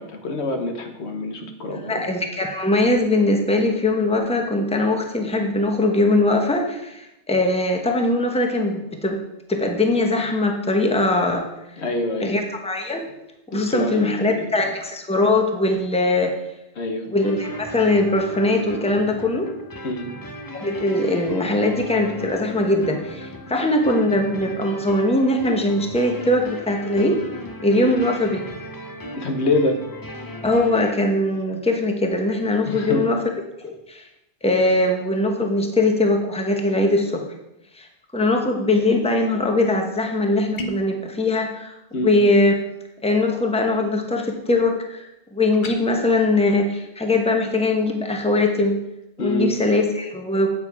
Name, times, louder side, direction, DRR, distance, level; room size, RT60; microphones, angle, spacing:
voice 1, 0.0-2.0 11.8-12.3 13.5-14.5 16.8-17.1 19.8-20.1 27.8-28.0 29.0-29.8 32.7-33.0 41.9-42.1 49.2-49.5, left 2 dB, 80° left, 5 dB, 1.4 m, -26 dB
voice 2, 1.7-9.2 9.5-11.5 12.2-13.1 13.5-16.3 17.1-19.5 20.5-27.2 27.6-28.4 30.4-33.2 33.6-34.0 34.4-37.2 37.7-37.9 38.1-41.7 42.0-42.6 43.0-48.8 49.2-50.5, left 2 dB, 5° left, 3 dB, 1.0 m, -21 dB
sound 1, 17.2-30.9, left 1 dB, 25° left, 0.7 m, -36 dB
sound 2, 40.6-41.0 45.5-45.8, equal, 50° left, 1.0 m, -32 dB
8.7 x 7.6 x 4.8 m, 0.88 s
omnidirectional pair, 1.1 m